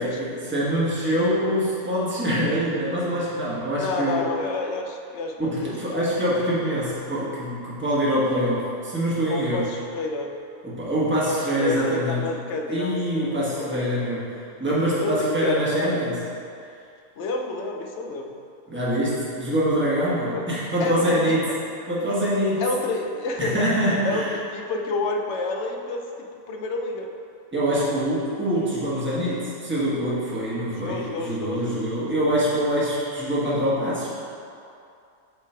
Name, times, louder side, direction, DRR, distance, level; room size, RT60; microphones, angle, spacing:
voice 1, 0.0-4.3 5.4-9.7 10.6-12.2 12.7-16.2 18.7-21.4 21.9-22.7 23.4-24.3 27.5-34.1, equal, 10° right, -8 dB, 1.1 m, -24 dB
voice 2, 3.8-6.0 9.3-10.3 11.3-13.9 15.0-16.0 17.2-18.4 20.3-20.4 20.8-21.4 22.6-23.7 24.0-27.1 30.8-32.3, left 3 dB, 60° left, 2 dB, 0.8 m, -29 dB
8.2 x 3.1 x 4.4 m, 2.5 s
omnidirectional pair, 1.6 m